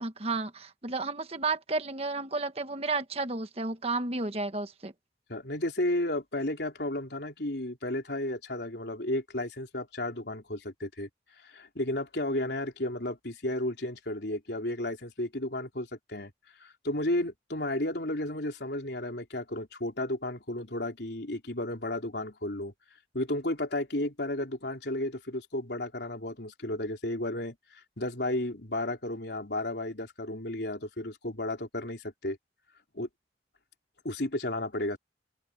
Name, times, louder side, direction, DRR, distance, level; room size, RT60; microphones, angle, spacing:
voice 1, 0.0-4.9, right 3 dB, 35° right, 1.3 m, -32 dB
voice 2, 5.3-11.1 11.4-16.3 16.6-22.7 23.1-27.6 28.0-32.4 33.0-33.1 34.0-35.0, left 1 dB, 70° left, 3.8 m, -33 dB
open air
head